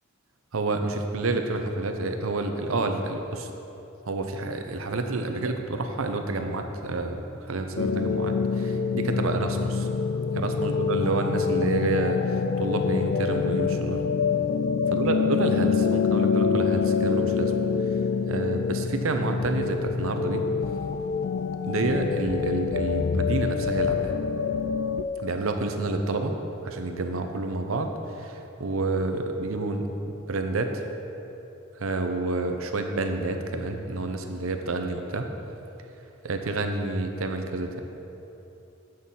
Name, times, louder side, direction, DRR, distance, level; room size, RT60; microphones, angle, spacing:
voice 1, 0.5-3.5 4.1-9.9 10.3-14.0 14.9-17.5 17.9-18.0 18.3-20.5 21.6-24.1 25.2-26.3 26.6-30.8 31.8-35.3 36.2-37.8, right 2 dB, 75° right, 5 dB, 0.7 m, -29 dB
sound 1, 7.8-25.0, left 6 dB, 55° left, 0.3 m, -26 dB
7.9 x 6.6 x 5.5 m, 3.0 s
head